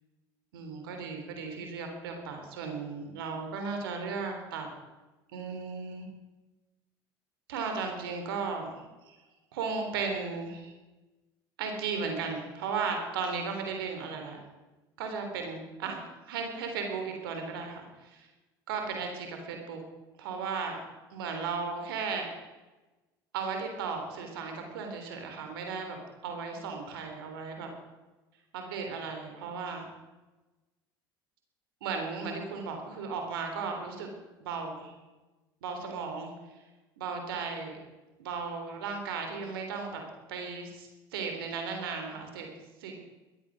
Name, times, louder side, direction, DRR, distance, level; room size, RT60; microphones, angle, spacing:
voice 1, 0.5-4.7 5.3-6.1 7.5-9.2 9.5-10.7 11.6-14.4 15.0-16.0 16.3-18.3 18.7-19.8 20.2-20.8 21.1-22.3 23.3-27.7 28.5-29.9 31.8-34.1 34.4-34.9 35.6-36.3 37.0-37.8 38.2-40.0 40.3-42.5 42.8-42.9, right 5 dB, 85° right, 4 dB, 3.5 m, -35 dB
16.5 x 13.0 x 6.3 m, 1.1 s
hypercardioid pair, 80°, 12 cm